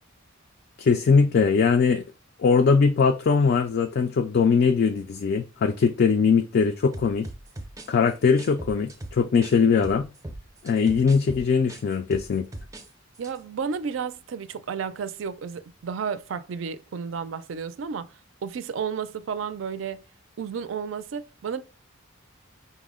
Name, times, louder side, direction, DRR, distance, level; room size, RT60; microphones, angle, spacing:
voice 1, 0.8-2.0 2.4-7.3 7.9-10.1 10.6-12.5, left 5 dB, 50° left, 0.3 m, -21 dB
sound 1, 6.9-9.6 9.8-12.9 13.1-13.4, right 1 dB, 15° right, 0.5 m, -39 dB
voice 2, 13.2-18.1 18.4-20.0 20.4-21.6, right 6 dB, 65° right, 0.4 m, -32 dB
5.4 x 2.0 x 3.6 m
head